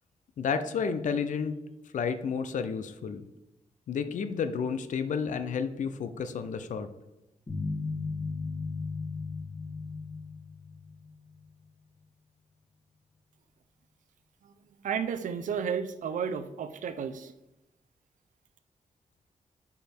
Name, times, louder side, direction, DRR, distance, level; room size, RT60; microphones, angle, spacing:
voice 1, 0.4-1.6 1.9-3.2 3.9-6.9, left 6 dB, 75° left, 11 dB, 0.5 m, -31 dB
sound 1, 7.5-11.7, left 4 dB, 30° left, 2.4 m, -36 dB
voice 2, 14.4-17.3, right 7 dB, 90° right, 9 dB, 0.5 m, -33 dB
5.2 x 4.8 x 4.4 m, 0.93 s
wide cardioid pair, 135°, 13 cm